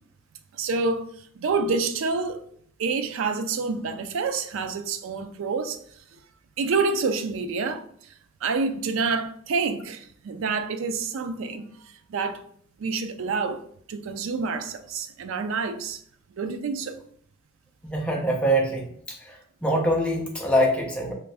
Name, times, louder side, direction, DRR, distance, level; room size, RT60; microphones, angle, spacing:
voice 1, 0.5-1.0 1.4-2.4 2.8-5.8 6.6-7.8 8.4-11.7 12.1-12.4 12.8-13.6 13.9-16.0 16.4-17.0, right 4 dB, 75° right, 0.4 m, -27 dB
voice 2, 17.8-19.4 19.6-21.1, equal, 5° left, 0.5 m, -24 dB
2.5 x 2.5 x 3.2 m
head